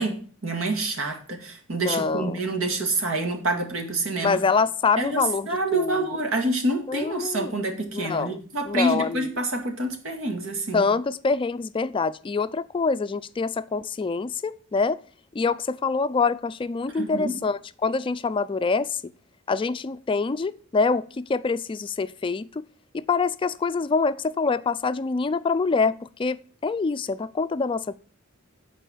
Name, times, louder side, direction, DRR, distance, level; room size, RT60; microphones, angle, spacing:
voice 1, 0.0-4.4 5.0-10.8 17.0-17.4, right 2 dB, 90° right, 4 dB, 2.2 m, -27 dB
voice 2, 1.8-2.4 4.2-6.0 6.9-7.5 7.9-8.4 8.7-9.3 10.7-15.0 15.3-19.0 19.5-22.6 22.9-27.9, left 4 dB, 25° left, 14 dB, 0.3 m, -25 dB
9.1 x 4.8 x 7.3 m, 0.43 s
head